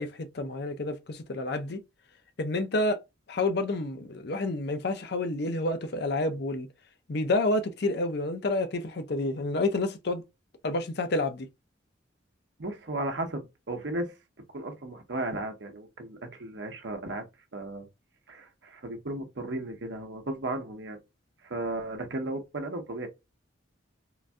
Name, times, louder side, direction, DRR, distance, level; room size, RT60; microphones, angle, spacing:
voice 1, 0.0-1.8 2.4-3.0 3.3-6.7 7.1-10.2 10.6-11.5, left 2 dB, 60° left, 0.5 m, -29 dB
voice 2, 12.6-14.1 14.5-17.2 17.5-17.9 18.3-21.0 21.4-23.1, right 2 dB, 65° right, 0.7 m, -35 dB
3.8 x 2.6 x 2.2 m
head